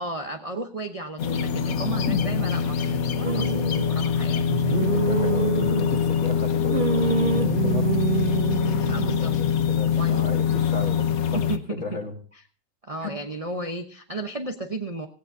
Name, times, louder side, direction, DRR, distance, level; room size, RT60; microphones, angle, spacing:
voice 1, 0.0-4.9 8.9-9.3 9.9-10.2 11.3-11.8 12.8-15.1, right 2 dB, 30° right, 4 dB, 0.7 m, -34 dB
sound 1, 1.2-11.6, left 8 dB, 65° left, 1.3 m, -24 dB
sound 2, 3.2-3.9 4.5-6.3 6.7-9.2, right 6 dB, 60° right, 0.5 m, -27 dB
voice 2, 4.9-7.9 9.3-11.4 11.7-12.1 13.0-13.2, left 2 dB, 45° left, 2 dB, 2.5 m, -35 dB
17.5 x 16.5 x 2.7 m, 0.42 s
omnidirectional pair, 1.7 m